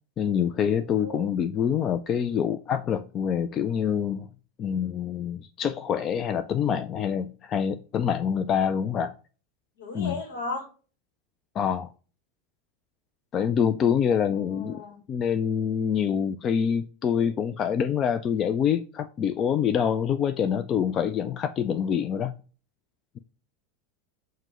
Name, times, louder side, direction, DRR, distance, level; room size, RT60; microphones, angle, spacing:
voice 1, 0.2-4.3 4.6-9.1 9.9-10.2 11.6-11.9 13.3-14.8 15.1-22.3, left 8 dB, 40° left, 0.3 m, -26 dB
voice 2, 0.8-1.4 9.8-10.7 14.5-15.0, left 2 dB, 80° left, 1.1 m, -36 dB
5.7 x 2.1 x 3.0 m
hypercardioid pair, 90°, 0 cm